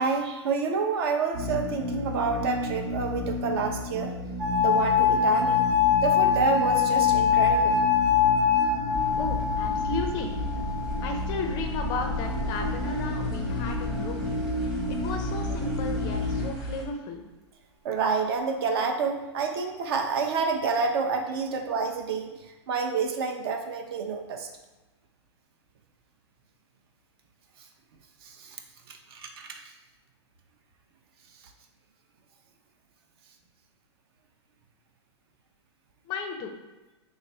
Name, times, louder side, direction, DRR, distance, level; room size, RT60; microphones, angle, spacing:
voice 1, 0.0-4.1 4.6-5.6 6.0-7.8 17.8-22.3 22.7-24.5 28.4-28.6 28.9-29.5, right 5 dB, 55° right, 4 dB, 0.6 m, -28 dB
sound 1, 1.3-16.5, left 2 dB, 90° right, 1.2 m, -32 dB
sound 2, 4.4-11.3 12.2-12.8, left 7 dB, 35° right, 0.9 m, -24 dB
sound 3, 8.9-16.8, equal, ahead, 0.7 m, -35 dB
voice 2, 9.2-10.3 11.0-14.3 14.9-17.2 36.1-36.5, left 4 dB, 30° left, 4 dB, 0.4 m, -34 dB
3.3 x 2.4 x 4.1 m, 1.1 s
hypercardioid pair, 135°, 15 cm